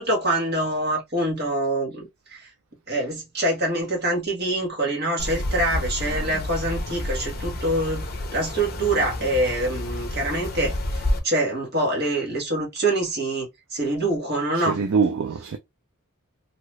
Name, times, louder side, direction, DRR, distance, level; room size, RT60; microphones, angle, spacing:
voice 1, 0.0-2.5 2.9-14.8, right 1 dB, 45° right, 1.2 m, -25 dB
sound 1, 5.2-11.2, left 1 dB, 45° left, 0.7 m, -29 dB
voice 2, 14.6-15.6, right 5 dB, 60° right, 0.4 m, -24 dB
2.8 x 2.3 x 3.1 m
head